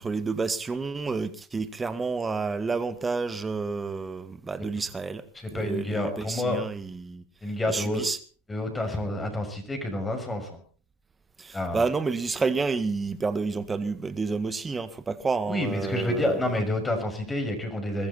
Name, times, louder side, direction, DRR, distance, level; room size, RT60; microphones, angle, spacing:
voice 1, 0.0-5.2 5.5-7.2 7.7-8.2 11.4-16.4, right 4 dB, 15° right, 1.8 m, -30 dB
voice 2, 5.4-6.6 7.4-8.0 8.5-10.6 11.5-11.8 15.5-18.1, left 1 dB, 15° left, 6.1 m, -29 dB
22.0 x 14.0 x 4.3 m
hypercardioid pair, 95°, 0 cm